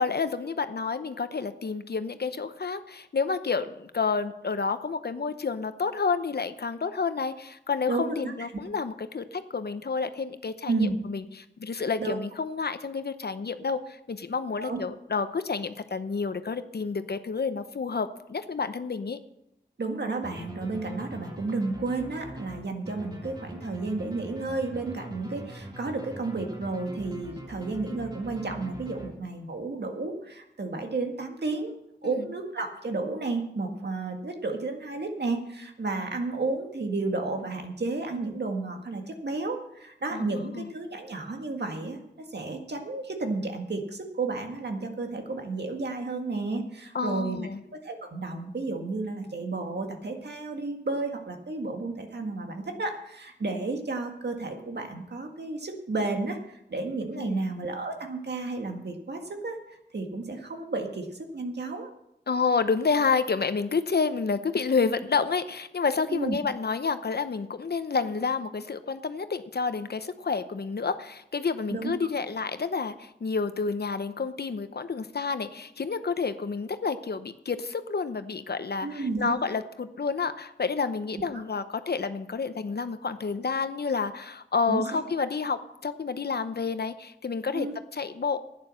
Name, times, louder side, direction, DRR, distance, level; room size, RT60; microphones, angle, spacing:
voice 1, 0.0-11.2 11.6-19.2 32.0-32.3 40.1-40.7 46.9-47.6 57.1-57.4 62.3-87.7 87.9-88.4, left 5 dB, 60° left, 11 dB, 0.8 m, -29 dB
voice 2, 7.9-8.3 10.7-10.9 12.0-12.2 14.6-14.8 19.8-31.8 32.0-42.0 42.3-47.4 47.7-59.6 59.9-61.9 66.1-66.4 71.7-71.9 78.8-79.5 81.2-81.3 84.7-85.0 87.5-87.8, right 3 dB, 65° right, 4 dB, 1.8 m, -32 dB
sound 1, 20.2-29.5, equal, 20° right, 3.1 m, -43 dB
11.5 x 9.5 x 6.4 m, 0.81 s
wide cardioid pair, 85°, 19 cm